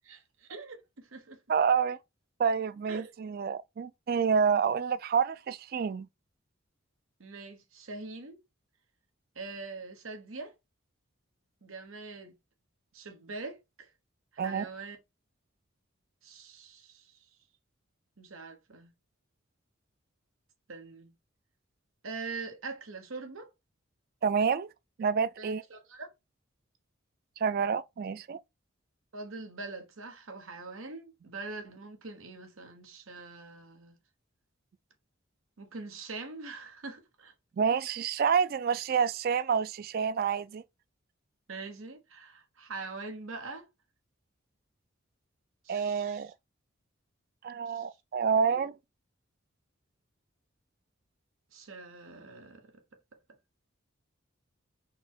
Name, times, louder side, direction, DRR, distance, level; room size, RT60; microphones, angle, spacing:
voice 1, 0.0-1.4 2.9-3.1 7.2-8.4 9.3-10.5 11.6-12.4 12.9-13.9 14.3-15.0 16.2-17.2 18.2-18.9 20.7-21.1 22.0-23.5 25.4-26.1 29.1-34.0 35.6-37.3 41.5-43.7 45.6-46.3 47.7-47.9 48.5-48.7 51.5-52.7, right 3 dB, 85° right, 1.1 m, -43 dB
voice 2, 1.5-2.0 2.4-6.1 14.4-14.6 24.2-24.7 25.0-25.6 27.4-28.4 37.6-40.6 45.7-46.3 47.4-48.7, right 6 dB, 45° right, 0.3 m, -28 dB
4.1 x 2.3 x 4.4 m
head